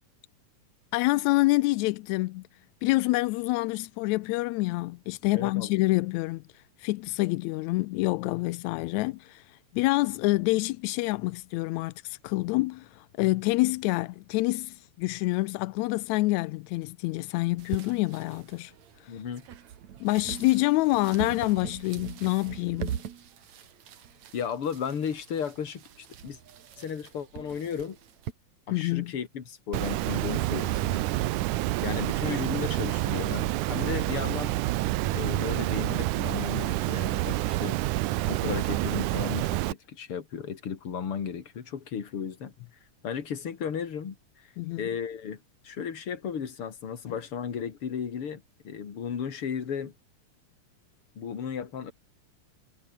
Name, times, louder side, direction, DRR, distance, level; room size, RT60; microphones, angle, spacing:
voice 1, 0.9-2.4 2.8-6.4 6.8-18.7 19.0-19.2 20.0-23.0 28.7-29.1 44.6-44.8, left 21 dB, 80° left, 1.7 m, -27 dB
voice 2, 5.3-5.8 19.1-19.5 24.3-26.4 26.8-28.0 28.7-31.1 31.8-34.5 35.1-37.8 38.2-42.5 43.0-44.5 44.8-49.9 51.2-51.9, left 7 dB, 45° left, 3.0 m, -35 dB
sound 1, 17.6-28.3, right 9 dB, 60° right, 3.0 m, -42 dB
Water, 29.7-39.7, right 17 dB, 80° right, 2.2 m, -28 dB
omnidirectional pair, 3.7 m